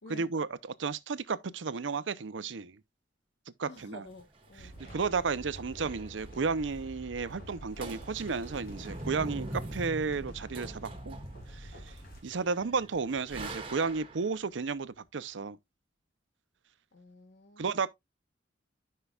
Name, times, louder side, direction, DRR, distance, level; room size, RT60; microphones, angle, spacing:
voice 1, 0.1-0.5 0.8-2.8 3.6-4.0 4.9-11.2 11.5-12.0 12.2-15.6 17.6-17.9, right 4 dB, 90° right, 0.6 m, -33 dB
voice 2, 3.6-4.7 5.0-5.4 16.9-17.9, left 2 dB, 70° left, 1.1 m, -51 dB
sound 1, 4.1-6.6 6.8-6.9 7.2-7.5 7.8-14.4, right 2 dB, 30° right, 1.4 m, -43 dB
sound 2, 4.6-12.2, equal, 55° left, 3.2 m, -47 dB
11.5 x 5.6 x 2.3 m
head